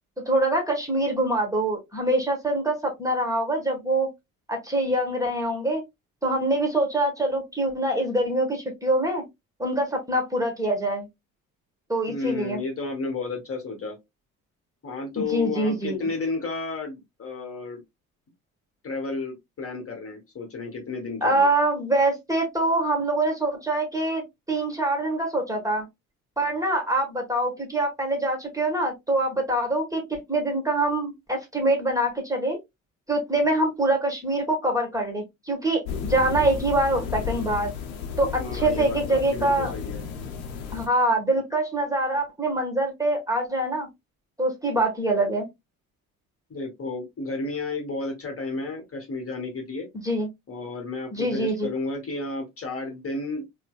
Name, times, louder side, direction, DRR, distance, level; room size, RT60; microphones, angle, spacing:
voice 1, 0.3-4.1 4.5-5.8 6.2-9.2 9.6-11.1 11.9-12.6 15.1-16.0 21.2-24.2 24.5-25.8 26.4-32.6 33.1-37.7 38.2-39.7 40.7-43.9 44.4-45.5 50.0-50.3 51.1-51.7, right 1 dB, 10° right, 1.3 m, -24 dB
voice 2, 12.1-14.0 14.8-17.8 18.8-21.5 38.2-40.0 46.5-49.9 50.5-53.5, left 3 dB, 30° left, 1.2 m, -32 dB
sound 1, 35.8-40.9, left 7 dB, 70° left, 0.9 m, -33 dB
4.3 x 2.2 x 2.3 m
figure-of-eight pair, 50°, 43 cm